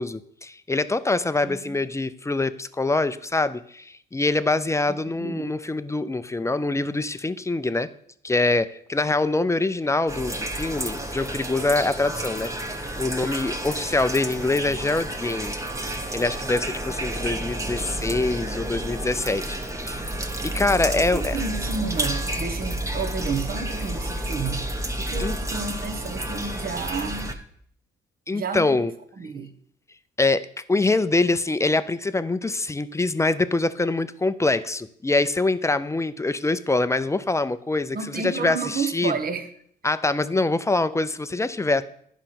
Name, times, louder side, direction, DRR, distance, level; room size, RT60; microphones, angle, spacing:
voice 1, 0.0-7.9 8.2-15.6 16.1-19.6 19.9-20.2 20.4-21.4 25.2-25.4 28.3-28.9 30.2-39.1 39.8-41.8, left 2 dB, 15° left, 0.5 m, -24 dB
voice 2, 1.4-1.8 4.9-5.5 20.8-24.6 25.0-27.4 28.3-28.8 29.2-29.5 37.9-39.5, right 5 dB, 50° right, 1.2 m, -31 dB
sound 1, 10.1-27.3, right 1 dB, 15° right, 1.1 m, -30 dB
10.5 x 5.1 x 5.8 m
cardioid pair, 90°, 20 cm